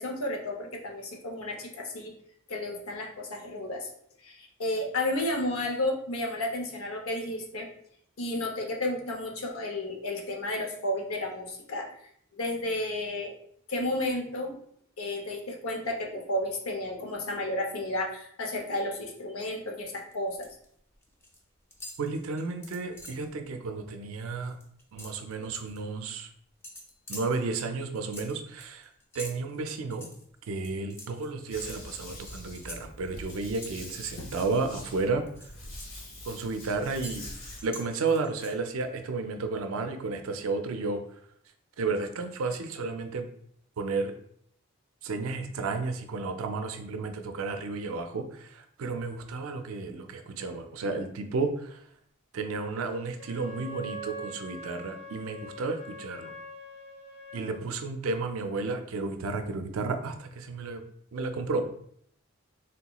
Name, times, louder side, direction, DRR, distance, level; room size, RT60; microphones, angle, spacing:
voice 1, 0.0-2.1 2.5-3.9 4.2-7.7 8.2-11.9 12.4-13.3 13.7-14.6 15.0-20.5 34.2-34.3, left 1 dB, 85° left, 2 dB, 0.7 m, -32 dB
sound 1, 20.0-20.6 20.9-21.4 21.7-23.3 23.7-23.9 24.2-25.8 26.6-34.8 35.3-38.8, left 1 dB, 10° left, 0.3 m, -47 dB
voice 2, 22.0-24.6 24.9-26.3 27.1-30.1 30.5-35.3 36.3-37.3 37.6-41.0 41.8-43.3 43.8-44.1 45.0-51.8 52.3-56.4 57.3-60.9 61.1-61.7, right 3 dB, 80° right, 7 dB, 0.4 m, -32 dB
sound 2, 31.5-37.6, left 1 dB, 65° left, 1.2 m, -44 dB
Wind instrument woodwind instrument, 53.1-57.6, equal, 50° left, 0.9 m, -43 dB
3.5 x 2.9 x 2.3 m, 0.66 s
head